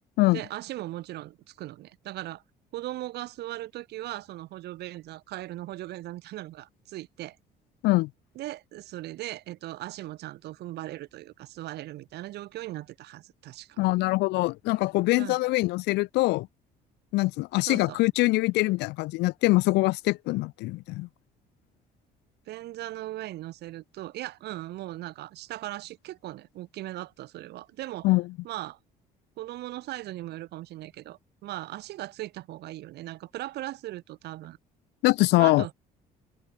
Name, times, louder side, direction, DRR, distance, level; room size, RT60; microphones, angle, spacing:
voice 1, 0.3-2.4 2.7-7.4 8.3-13.8 15.2-15.4 17.7-18.0 22.5-28.1 28.4-28.8 29.4-34.6 35.3-35.7, right 16 dB, 75° right, 5.0 m, -38 dB
voice 2, 13.8-16.5 17.1-21.1 28.0-28.2 35.0-35.6, left 21 dB, 90° left, 1.3 m, -23 dB
open air
cardioid pair, 110°, 17 cm